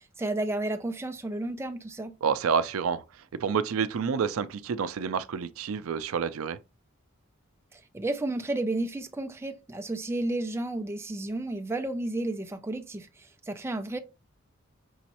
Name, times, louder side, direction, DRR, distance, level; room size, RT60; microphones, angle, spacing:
voice 1, 0.0-2.1 7.7-14.0, right 2 dB, 10° right, 0.4 m, -32 dB
voice 2, 2.2-3.0 3.4-6.6, right 6 dB, 85° right, 0.4 m, -28 dB
5.4 x 3.0 x 2.8 m
head